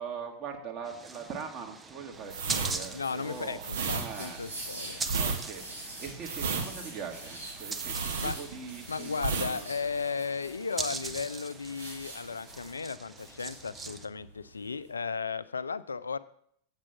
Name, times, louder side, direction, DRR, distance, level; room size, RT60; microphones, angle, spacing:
voice 1, 0.0-3.6 3.9-4.4 5.1-9.7, right 6 dB, 35° right, 2 dB, 1.7 m, -42 dB
sound 1, 0.8-14.1, right 4 dB, 15° right, 0.6 m, -42 dB
sound 2, 2.3-8.8 9.1-9.5 9.8-10.0, right 5 dB, 60° right, 1.3 m, -32 dB
sound 3, 2.7-14.9, right 1 dB, 80° right, 4.5 m, -47 dB
voice 2, 2.9-5.0 8.2-8.4 8.9-16.2, left 5 dB, 75° left, 15 dB, 0.4 m, -35 dB
8.1 x 7.5 x 5.8 m, 0.67 s
figure-of-eight pair, 90°, 0 cm